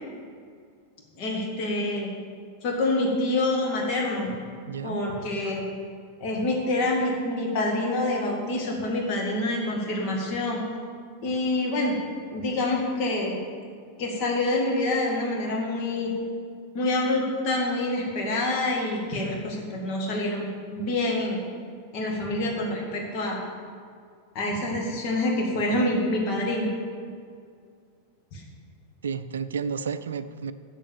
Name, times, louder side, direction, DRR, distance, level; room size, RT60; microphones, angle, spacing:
voice 1, 1.2-2.1 2.6-4.3 4.8-5.6 6.2-10.6 11.2-11.9 12.3-13.4 14.0-16.1 16.7-21.4 21.9-23.4 24.3-26.7 28.3-28.4, left 2 dB, 40° left, -1 dB, 2.2 m, -26 dB
voice 2, 4.7-5.0 29.0-30.5, right 6 dB, 65° right, 12 dB, 0.4 m, -31 dB
7.4 x 6.8 x 7.2 m, 2.2 s
figure-of-eight pair, 90°, 0 cm